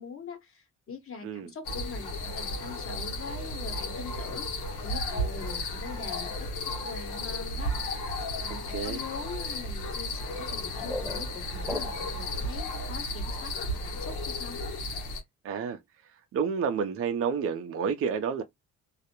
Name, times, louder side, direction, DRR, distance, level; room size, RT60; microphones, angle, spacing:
voice 1, 0.0-6.3 6.8-7.7 8.4-13.5 13.8-14.6, left 5 dB, 45° left, 1.1 m, -43 dB
sound 1, 1.6-15.2, left 1 dB, 90° left, 0.9 m, -34 dB
sound 2, 10.6-12.3, left 1 dB, ahead, 0.9 m, -38 dB
voice 2, 15.4-15.8 16.3-18.4, right 6 dB, 50° right, 0.5 m, -29 dB
2.4 x 2.0 x 2.9 m
cardioid pair, 90°, 30 cm